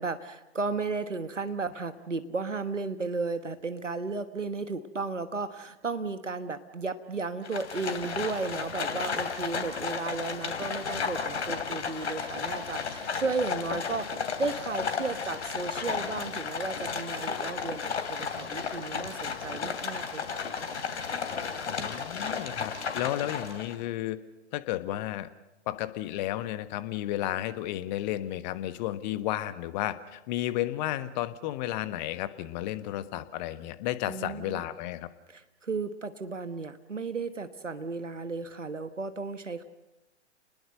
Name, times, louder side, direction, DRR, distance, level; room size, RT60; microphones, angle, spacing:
voice 1, 0.0-20.4 34.1-34.7 35.3-39.6, right 4 dB, 90° right, 10 dB, 1.3 m, -34 dB
Livestock farm animals working animals, 7.4-23.8, left 6 dB, 65° left, 2.9 m, -33 dB
voice 2, 21.6-24.2 24.5-25.3 25.7-35.1, left 14 dB, 40° left, 12 dB, 1.4 m, -33 dB
29.0 x 20.5 x 6.5 m, 0.98 s
figure-of-eight pair, 110°, 36 cm